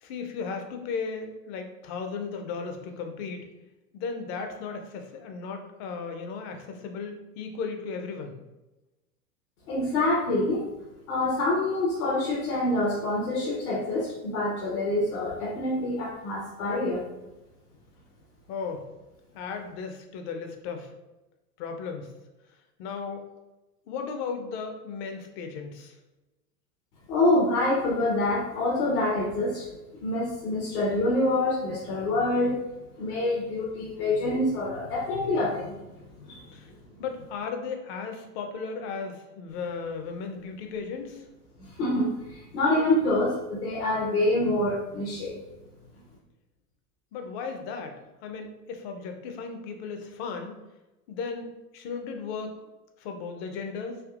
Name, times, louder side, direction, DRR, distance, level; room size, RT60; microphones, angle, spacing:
voice 1, 0.0-3.5 3.9-8.4 18.5-18.9 19.3-20.9 21.6-22.1 22.8-23.2 23.9-25.9 36.5-36.7 37.0-41.2 47.1-48.0 48.2-50.6 51.1-51.5 51.7-52.5 53.0-54.0, left 5 dB, 45° left, 5 dB, 0.6 m, -35 dB
voice 2, 9.7-10.6 11.1-17.0 27.1-29.7 30.0-32.6 33.0-35.7 36.2-36.4 41.8-45.4, left 2 dB, 70° left, -5 dB, 1.0 m, -26 dB
3.5 x 2.7 x 2.4 m, 1.0 s
hypercardioid pair, 100°, 46 cm